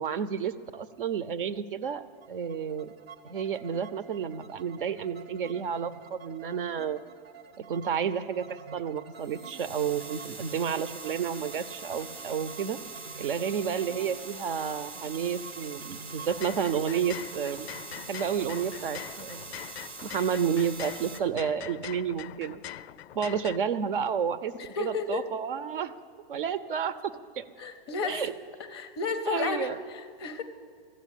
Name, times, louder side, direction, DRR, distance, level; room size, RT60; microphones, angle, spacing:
voice 1, 0.0-2.9 3.3-7.0 7.7-12.8 13.2-17.7 18.1-19.6 20.0-22.6 23.1-24.5 24.8-25.9 26.3-27.4 28.0-28.3 29.3-29.8, right 7 dB, 60° right, 15 dB, 0.8 m, -31 dB
sound 1, 2.2-19.9, right 6 dB, 90° right, 1.1 m, -49 dB
sound 2, 9.1-21.2, right 4 dB, 20° right, 0.6 m, -43 dB
sound 3, 16.2-23.6, left 13 dB, 85° left, 0.5 m, -43 dB
voice 2, 24.6-25.3 27.6-28.3 28.6-30.4, left 5 dB, 25° left, 10 dB, 0.5 m, -33 dB
14.5 x 8.1 x 10.0 m, 2.1 s
supercardioid pair, 175°, 30 cm